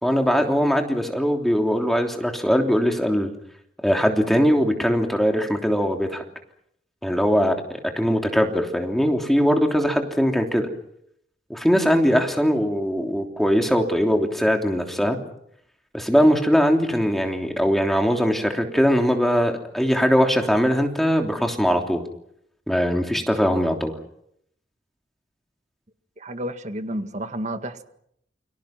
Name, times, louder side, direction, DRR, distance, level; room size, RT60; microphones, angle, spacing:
voice 1, 0.0-3.3 3.8-6.2 7.0-7.6 8.0-10.7 11.5-15.2 15.9-22.0 22.7-24.0, equal, ahead, 3.2 m, -21 dB
voice 2, 26.2-27.8, right 1 dB, 40° right, 1.9 m, -31 dB
29.5 x 25.0 x 6.0 m
head